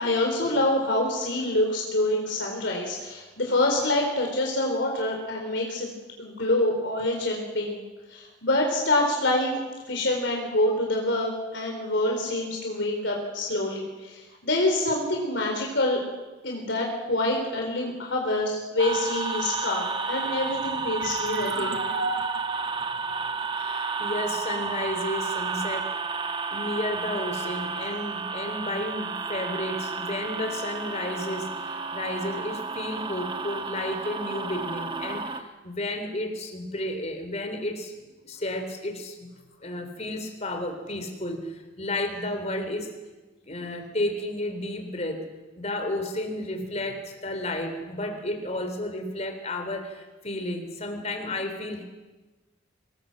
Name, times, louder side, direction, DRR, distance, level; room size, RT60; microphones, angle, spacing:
voice 1, 0.0-5.9 6.2-7.8 8.1-9.6 9.9-16.0 16.4-21.8, left 1 dB, 65° left, 0 dB, 4.0 m, -26 dB
sound 1, 18.8-35.4, right 4 dB, 25° right, 1.4 m, -31 dB
sound 2, 21.0-24.4, right 3 dB, 90° right, 2.5 m, -36 dB
voice 2, 23.2-25.9 26.5-39.3 39.6-42.9 43.4-45.3 45.6-51.8, left 1 dB, 35° left, 6 dB, 3.8 m, -32 dB
25.0 x 20.0 x 7.8 m, 1.2 s
head